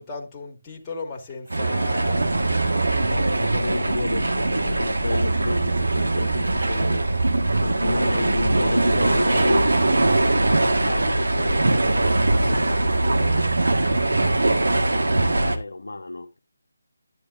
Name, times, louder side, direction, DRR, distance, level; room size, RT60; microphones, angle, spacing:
voice 1, 0.0-2.3, left 3 dB, 20° left, 1.9 m, -35 dB
sound 1, 1.2-5.3 6.1-7.5 8.9-9.8, right 2 dB, 60° right, 5.3 m, -41 dB
sound 2, 1.5-15.6, right 2 dB, 75° right, 1.5 m, -22 dB
sound 3, 2.0-15.0, right 1 dB, 40° right, 1.8 m, -33 dB
voice 2, 3.1-7.1 7.6-9.7 10.2-12.1 12.4-13.5 13.8-14.1 14.9-16.4, left 2 dB, 70° left, 1.0 m, -31 dB
10.5 x 10.0 x 2.5 m
figure-of-eight pair, 155°, 0 cm